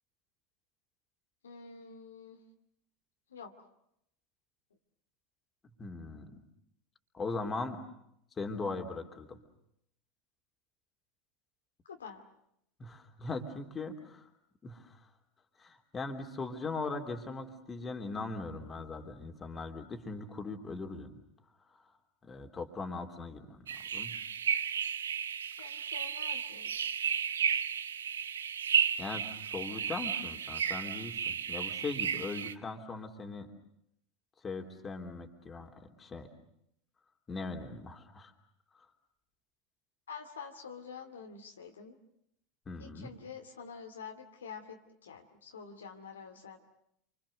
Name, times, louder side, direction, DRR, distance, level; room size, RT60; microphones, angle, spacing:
voice 1, 1.4-2.4 3.3-3.5 11.9-12.2 25.6-26.9 40.1-42.0 42.8-46.6, left 6 dB, 75° left, 4 dB, 2.5 m, -47 dB
voice 2, 5.8-6.3 7.1-7.8 8.4-9.4 12.8-14.3 14.6-15.0 15.6-21.1 22.2-24.2 29.0-33.5 34.4-36.3 37.3-38.3 38.7-38.8 42.7-43.1, left 3 dB, 20° left, 4 dB, 3.4 m, -40 dB
Arrival Forest small, 23.7-32.5, right 8 dB, 75° right, 0.9 m, -33 dB
28.0 x 25.5 x 6.7 m, 0.75 s
figure-of-eight pair, 80°, 0 cm